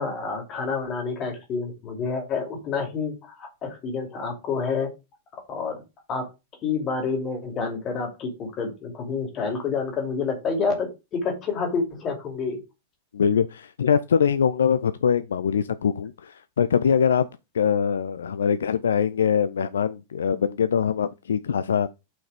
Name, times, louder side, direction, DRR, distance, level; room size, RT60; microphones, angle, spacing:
voice 1, 0.0-4.9 5.3-5.8 6.1-6.3 6.6-12.6, left 4 dB, 30° left, 2.6 m, -28 dB
voice 2, 13.1-17.3 17.5-21.9, left 7 dB, 65° left, 0.4 m, -23 dB
5.9 x 4.7 x 4.9 m
figure-of-eight pair, 90°, 0 cm